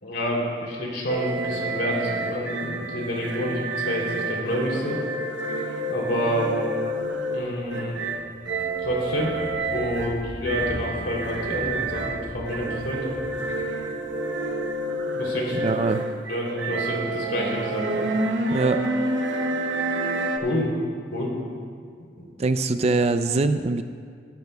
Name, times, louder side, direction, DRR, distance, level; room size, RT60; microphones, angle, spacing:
voice 1, 0.0-5.0 5.9-6.5 7.3-8.0 8.8-9.3 9.7-13.1 15.1-15.7 16.3-18.0 20.4-20.7 21.1-21.3 22.2-22.3, equal, 65° left, -2 dB, 3.1 m, -28 dB
sound 1, 1.1-20.4, right 2 dB, 85° right, 1.0 m, -29 dB
sound 2, 6.8-15.7, equal, 40° left, 1.4 m, -41 dB
voice 2, 15.5-16.0 18.5-18.8 22.4-23.8, right 3 dB, 35° right, 9 dB, 0.4 m, -23 dB
21.5 x 12.0 x 2.3 m, 2.1 s
head